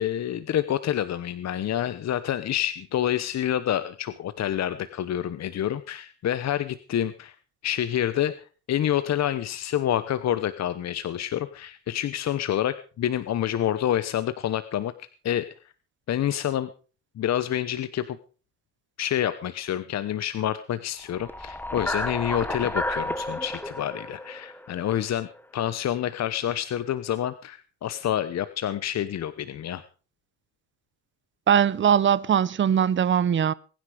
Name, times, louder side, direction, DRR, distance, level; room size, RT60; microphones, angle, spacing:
voice 1, 0.0-7.3 7.6-8.3 8.7-14.9 15.2-15.4 16.1-16.7 17.2-18.2 19.0-25.3 25.5-29.8, left 11 dB, 60° left, 1.0 m, -28 dB
sound 1, 21.1-25.4, left 1 dB, 5° left, 1.1 m, -32 dB
voice 2, 31.5-33.5, right 8 dB, 40° right, 0.8 m, -21 dB
22.0 x 10.0 x 5.0 m
cardioid pair, 90°, 30 cm